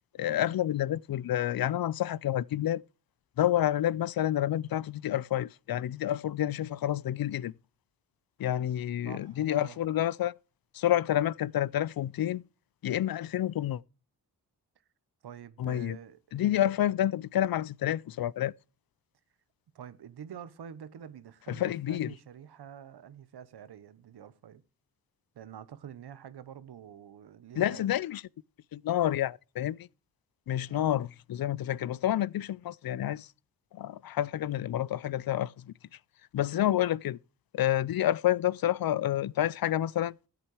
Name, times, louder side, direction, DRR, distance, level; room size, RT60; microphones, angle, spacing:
voice 1, 0.2-2.8 3.4-7.5 8.4-10.3 10.7-12.4 12.8-13.8 15.6-16.0 16.3-18.5 21.5-22.1 27.6-28.2 28.7-29.9 30.5-33.3 33.7-35.7 36.3-37.2 37.5-40.1, left 12 dB, 65° left, 0.5 m, -29 dB
voice 2, 9.0-9.8 15.2-16.8 19.7-24.6 25.3-27.9 30.6-30.9, right 9 dB, 85° right, 1.0 m, -47 dB
13.0 x 8.2 x 4.8 m
cardioid pair, 45°, 38 cm